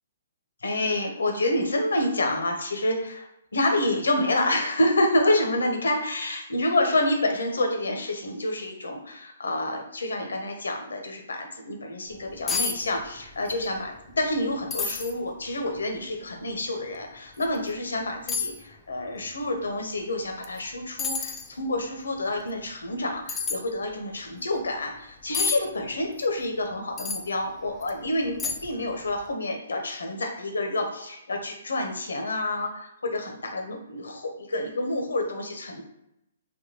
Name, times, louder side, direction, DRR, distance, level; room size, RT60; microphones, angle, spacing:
voice 1, 0.6-3.3 3.5-35.8, left 1 dB, 80° left, 3 dB, 0.6 m, -28 dB
sound 1, 12.1-12.2 12.5-12.8 13.0-13.6 14.0-14.1 14.7-15.1 15.8-15.9 17.4-17.5 18.3-18.6 20.4-20.6 21.0-21.5 23.3-23.6 25.3-25.6 27.0-27.3 27.8-27.9 28.4-28.8 29.1-29.2, left 5 dB, 15° left, 0.3 m, -29 dB
3.5 x 2.2 x 2.8 m, 0.83 s
hypercardioid pair, 135°, 0 cm